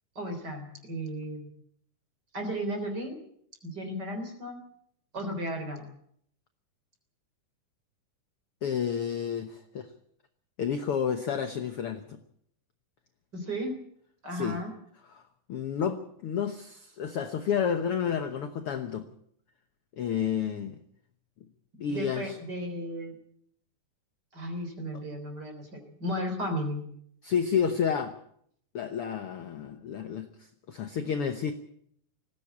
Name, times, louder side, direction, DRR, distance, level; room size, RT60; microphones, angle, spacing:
voice 1, 0.2-1.5 2.3-3.2 3.6-4.6 5.1-5.8 13.3-13.7 14.2-14.7 21.9-23.1 24.3-26.8, equal, 30° right, 6 dB, 3.9 m, -34 dB
voice 2, 8.6-9.9 10.6-12.2 14.3-14.6 15.1-15.2 15.5-19.1 20.0-20.8 21.8-22.4 27.2-28.2 28.7-30.3 30.7-31.5, left 7 dB, 75° left, 8 dB, 1.3 m, -30 dB
19.5 x 15.5 x 8.4 m, 0.68 s
omnidirectional pair, 4.1 m